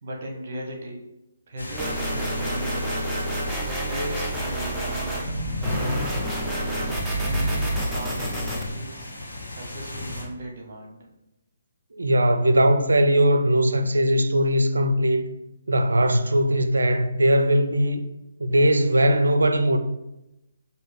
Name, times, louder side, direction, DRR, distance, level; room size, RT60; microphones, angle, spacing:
voice 1, 0.0-1.0 1.5-3.0 3.6-5.2 5.6-6.0 7.1-9.1 9.5-11.1, right 1 dB, 50° right, 0.9 m, -37 dB
sound 1, 1.6-10.2, left 2 dB, 80° left, 1.3 m, -34 dB
sound 2, 1.8-5.3 5.6-8.6, right 1 dB, ahead, 0.7 m, -28 dB
voice 2, 11.9-15.2 15.7-18.0 18.4-19.8, right 1 dB, 80° right, 0.4 m, -20 dB
6.1 x 2.6 x 3.2 m
figure-of-eight pair, 140°, 0 cm